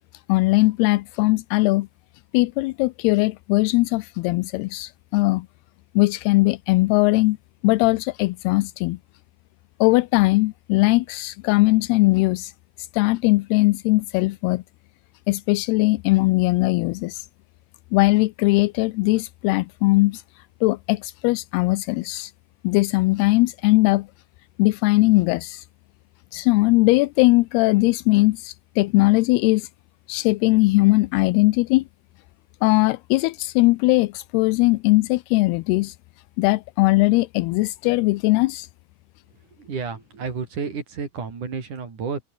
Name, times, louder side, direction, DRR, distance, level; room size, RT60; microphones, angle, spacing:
voice 1, 0.3-1.9 2.3-5.5 6.0-7.4 7.6-9.0 9.8-12.5 12.9-14.6 15.3-17.3 17.9-20.2 20.6-22.3 22.6-24.1 24.6-25.7 26.3-29.7 30.1-31.8 32.6-36.0 36.4-38.7, left 22 dB, 85° left, 2.6 m, -20 dB
voice 2, 39.5-42.2, right 5 dB, 50° right, 5.6 m, -31 dB
omnidirectional pair, 4.6 m